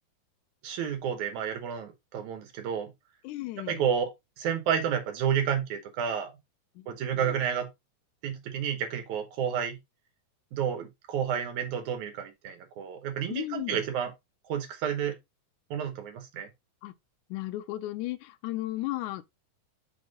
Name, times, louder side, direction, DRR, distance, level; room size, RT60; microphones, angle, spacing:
voice 1, 0.6-2.9 3.6-6.3 6.9-7.7 8.2-9.8 10.5-14.1 14.5-15.2 15.7-16.5, right 8 dB, 75° right, 2.5 m, -30 dB
voice 2, 3.2-3.9 6.8-6.9 7.1-7.4 13.3-13.8 16.8-16.9 17.3-19.2, left 16 dB, 85° left, 2.0 m, -35 dB
5.9 x 3.6 x 5.2 m
omnidirectional pair, 3.5 m